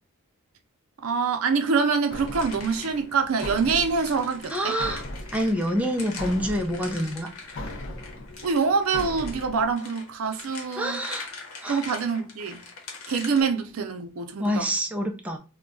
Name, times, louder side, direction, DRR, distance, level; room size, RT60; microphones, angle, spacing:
voice 1, 1.0-4.7 8.4-11.0 11.7-12.6 13.1-14.7, right 5 dB, 80° right, 0.5 m, -25 dB
sound 1, 2.1-13.4, left 4 dB, 80° left, 0.9 m, -43 dB
sound 2, 2.1-9.7, left 1 dB, 60° left, 0.5 m, -39 dB
voice 2, 4.5-5.0 5.3-7.3 10.8-11.3 11.6-11.8 14.4-15.4, equal, 5° right, 0.4 m, -27 dB
2.3 x 2.2 x 3.7 m
head